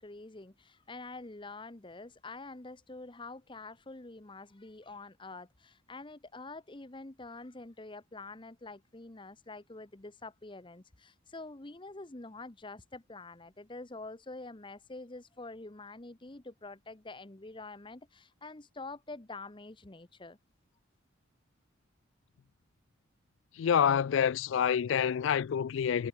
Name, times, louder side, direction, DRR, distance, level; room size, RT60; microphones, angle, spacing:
voice 1, 0.0-20.4, left 3 dB, 25° left, 1.0 m, -46 dB
voice 2, 23.6-26.1, left 8 dB, 65° left, 0.3 m, -27 dB
head